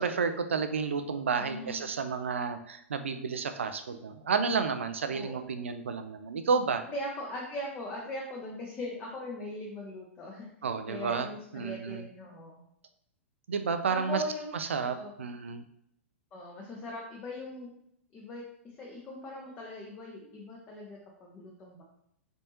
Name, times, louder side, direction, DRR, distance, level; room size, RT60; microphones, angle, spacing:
voice 1, 0.0-6.8 10.6-11.3 11.5-12.0 13.5-14.2 14.5-15.6, right 5 dB, 65° right, 9 dB, 0.4 m, -31 dB
voice 2, 1.4-1.9 5.1-5.4 6.9-10.5 10.9-12.6 13.9-14.5 14.8-15.1 16.3-17.7 18.1-21.8, left 1 dB, 20° left, -2 dB, 0.7 m, -40 dB
4.1 x 3.4 x 2.9 m, 0.74 s
figure-of-eight pair, 100°, 7 cm